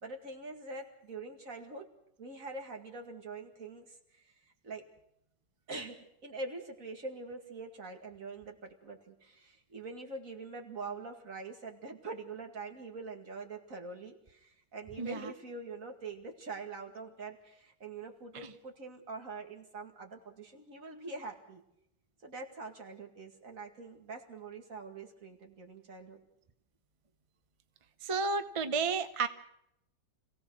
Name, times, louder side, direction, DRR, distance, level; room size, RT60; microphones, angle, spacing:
voice 1, 0.0-1.9 2.2-4.3 4.6-4.8 5.7-21.6 22.2-26.2, right 3 dB, 50° right, 2 dB, 2.6 m, -44 dB
voice 2, 28.0-29.3, right 4 dB, 30° right, 9 dB, 0.5 m, -32 dB
26.5 x 17.0 x 6.4 m, 0.78 s
omnidirectional pair, 1.9 m